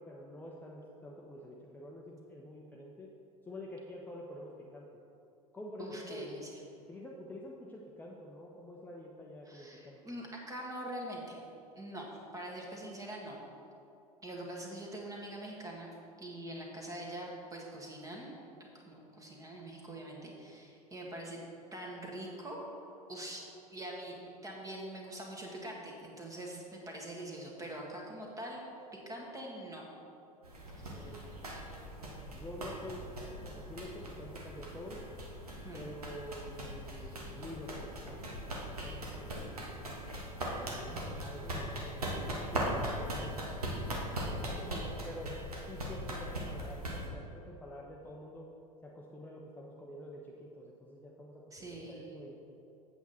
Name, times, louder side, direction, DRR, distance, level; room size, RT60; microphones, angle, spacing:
voice 1, 0.0-3.1 3.5-4.9 5.5-6.3 6.9-10.0 30.9-31.2 32.3-33.1 33.4-35.0 35.7-40.0 40.5-43.8 44.3-45.3 45.7-48.5 48.8-52.4, left 1 dB, 10° left, -2 dB, 0.8 m, -48 dB
voice 2, 5.8-6.5 9.5-11.4 11.7-13.4 14.2-15.9 16.2-21.4 21.7-22.7 23.1-23.4 23.7-28.6 29.1-29.8 30.8-31.1 35.6-35.8 40.7-41.0 44.5-44.8 51.5-52.2, right 1 dB, 20° right, -1 dB, 1.8 m, -44 dB
sound 1, 30.4-47.1, right 1 dB, 80° right, 1.4 m, -40 dB
8.2 x 7.9 x 4.2 m, 2.8 s
figure-of-eight pair, 80°, 19 cm